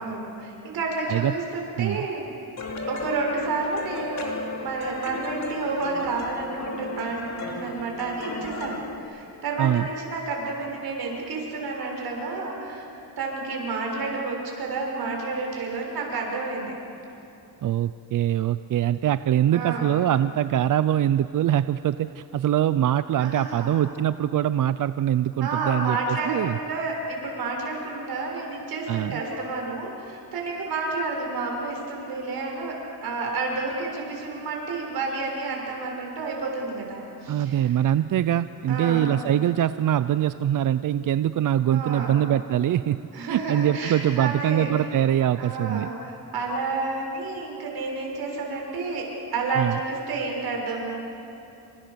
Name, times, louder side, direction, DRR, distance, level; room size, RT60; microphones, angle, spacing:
voice 1, 0.0-2.3 2.9-4.3 4.6-12.9 13.2-16.8 19.5-19.9 23.2-23.7 25.4-37.7 38.7-39.1 41.7-42.1 43.1-44.9 45.4-49.1 49.3-51.1, right 3 dB, 85° right, 0 dB, 6.7 m, -30 dB
sound 1, 2.6-9.0, left 3 dB, 45° left, 3.1 m, -35 dB
voice 2, 17.6-26.6 28.9-29.2 37.3-43.0 43.3-45.9 49.6-49.8, right 11 dB, 60° right, 13 dB, 0.6 m, -23 dB
29.0 x 26.5 x 6.9 m, 2.9 s
cardioid pair, 125°, 36 cm